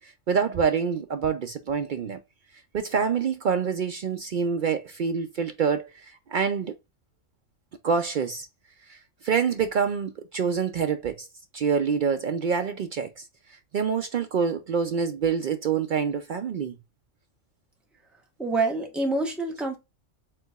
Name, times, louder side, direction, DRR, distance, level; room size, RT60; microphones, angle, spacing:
voice 1, 0.0-2.2 2.7-6.7 7.8-8.5 8.9-11.3 11.5-13.3 13.7-16.7, right 6 dB, 75° right, 0.4 m, -26 dB
voice 2, 18.4-19.8, right 3 dB, ahead, 1.0 m, -26 dB
4.6 x 3.9 x 2.3 m
omnidirectional pair, 1.4 m